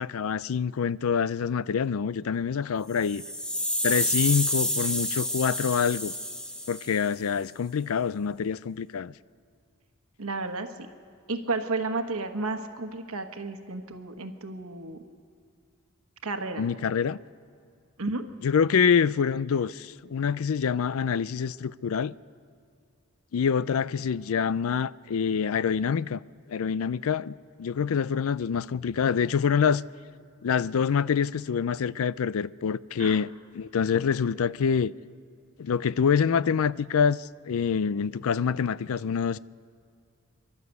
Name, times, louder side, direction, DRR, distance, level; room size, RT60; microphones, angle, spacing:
voice 1, 0.0-3.2 3.8-6.1 6.7-9.1 16.6-17.2 18.4-22.1 23.3-26.2 26.5-27.3 27.6-29.8 30.4-34.9 35.6-39.4, left 6 dB, 80° left, 0.4 m, -26 dB
sound 1, 2.9-7.1, left 1 dB, 5° left, 1.0 m, -29 dB
voice 2, 10.2-10.7 11.3-15.0 16.2-16.7 18.0-18.2 33.0-33.2, right 3 dB, 80° right, 1.3 m, -32 dB
29.5 x 12.0 x 8.2 m
head